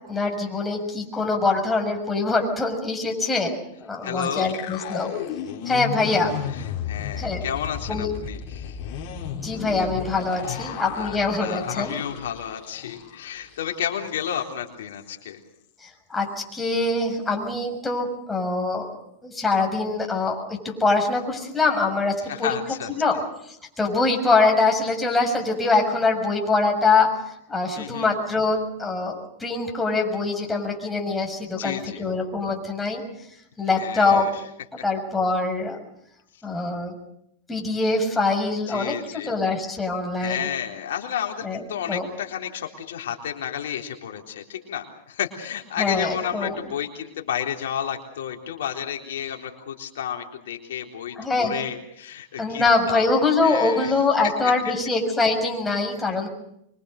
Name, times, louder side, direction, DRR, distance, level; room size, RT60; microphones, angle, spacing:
voice 1, 0.1-3.5 3.8-5.1 5.6-6.4 7.2-7.5 7.9-8.1 9.4-12.0 15.8-18.9 19.2-22.5 22.9-23.2 23.5-33.0 33.6-34.3 34.8-35.8 36.4-36.9 37.5-40.5 41.4-42.1 45.8-46.6 51.2-51.6 52.4-56.3, left 3 dB, 10° left, 1 dB, 6.5 m, -24 dB
voice 2, 4.0-4.5 5.9-6.3 6.5-8.8 10.4-15.4 22.3-22.9 27.8-28.1 31.6-32.0 33.7-34.3 38.7-39.4 40.2-53.1 53.4-53.9, left 9 dB, 80° left, 2 dB, 3.8 m, -31 dB
sound 1, 4.2-13.2 13.5-13.7 14.1-14.5, left 8 dB, 55° left, 4.3 m, -34 dB
25.0 x 24.0 x 6.6 m, 0.76 s
hypercardioid pair, 125°, 0 cm